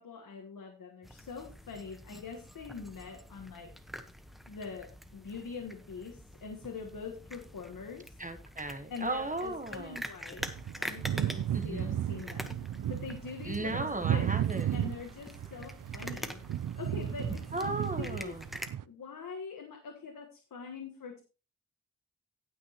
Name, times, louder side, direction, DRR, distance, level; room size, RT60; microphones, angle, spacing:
voice 1, 0.0-3.7 4.5-8.2 8.9-10.5 10.8-12.6 12.9-14.3 14.7-16.4 16.7-18.4 18.8-21.2, left 5 dB, 80° left, 3 dB, 1.5 m, -44 dB
sound 1, 1.0-18.7, equal, ahead, 1.1 m, -46 dB
voice 2, 8.2-10.0 11.5-12.0 13.4-14.8 17.5-18.5, right 2 dB, 25° right, 8 dB, 1.2 m, -36 dB
sound 2, 10.4-18.8, right 11 dB, 75° right, 0.5 m, -34 dB
18.0 x 6.1 x 2.9 m, 0.32 s
wide cardioid pair, 80°, 33 cm